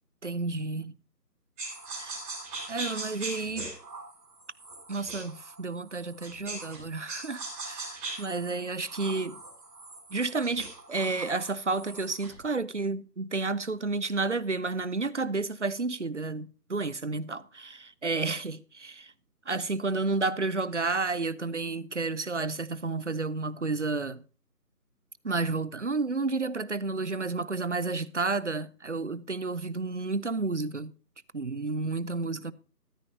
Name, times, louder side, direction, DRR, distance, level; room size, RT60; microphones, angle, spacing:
voice 1, 0.2-0.9 2.0-2.2 2.7-3.7 4.9-9.4 10.1-19.1 19.5-24.2 25.2-30.9 31.3-32.5, right 3 dB, 50° right, 0.5 m, -31 dB
sound 1, 1.6-6.8 7.1-12.4, right 3 dB, 10° right, 3.1 m, -41 dB
14.0 x 13.5 x 2.7 m
figure-of-eight pair, 160°, 49 cm